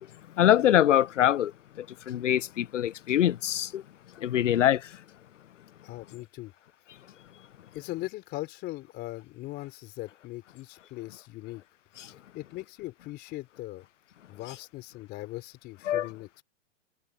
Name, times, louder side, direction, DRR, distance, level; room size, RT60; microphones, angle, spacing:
voice 1, 0.4-1.5 1.8-3.8 4.2-4.8 15.9-16.1, left 11 dB, 85° left, 0.7 m, -23 dB
voice 2, 5.8-6.5 7.7-11.6 12.3-13.9 14.3-16.4, left 18 dB, 25° left, 4.0 m, -40 dB
hypercardioid pair, 140°, 36 cm